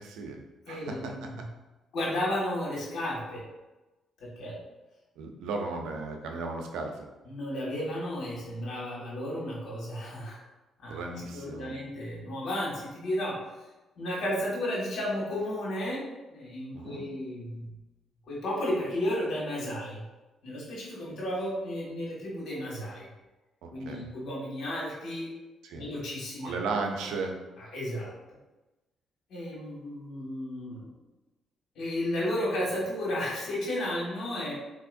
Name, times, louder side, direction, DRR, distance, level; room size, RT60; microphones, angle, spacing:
voice 1, 0.0-1.1 5.2-7.0 10.9-11.7 16.7-17.0 23.6-24.1 25.6-25.8 26.4-27.4, right 3 dB, 90° right, 3 dB, 0.5 m, -35 dB
voice 2, 0.7-1.5 1.9-3.4 4.2-4.6 7.2-10.4 10.8-13.4 14.0-16.0 16.3-17.7 18.3-20.0 20.4-23.1 23.7-25.3 25.7-26.6 27.6-28.1 29.3-30.9 31.7-34.5, left 1 dB, 70° left, -5 dB, 1.5 m, -33 dB
3.7 x 2.8 x 2.5 m, 1.1 s
cardioid pair, 90°, 0 cm